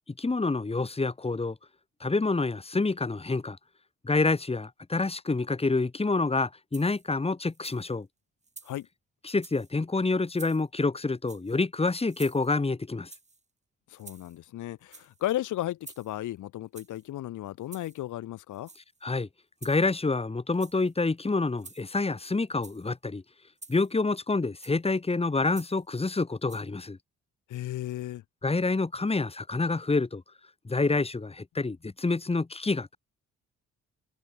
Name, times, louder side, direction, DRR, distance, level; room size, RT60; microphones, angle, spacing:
voice 1, 0.2-1.5 2.0-3.6 4.0-8.1 9.2-13.1 19.0-19.3 19.6-23.2 23.7-27.0 28.4-30.2 30.6-33.0, left 3 dB, 20° left, 3.2 m, -27 dB
sound 1, 6.7-7.1 7.5-7.9 8.4-8.9 9.3-9.7 10.3-10.7 11.2-11.6 12.1-12.7 13.1-13.4 13.9-14.5 14.8-15.2 15.8-16.2 16.7-17.0 17.6-18.0 18.5-19.0 19.6-20.1 20.5-20.9 21.6-22.0 22.5-22.9 23.6-24.0 24.6-24.9 25.5-25.9 26.5-26.6, right 3 dB, 25° right, 7.5 m, -50 dB
voice 2, 13.9-18.7 27.5-28.2, left 14 dB, 80° left, 2.2 m, -34 dB
cardioid pair, 90°, 30 cm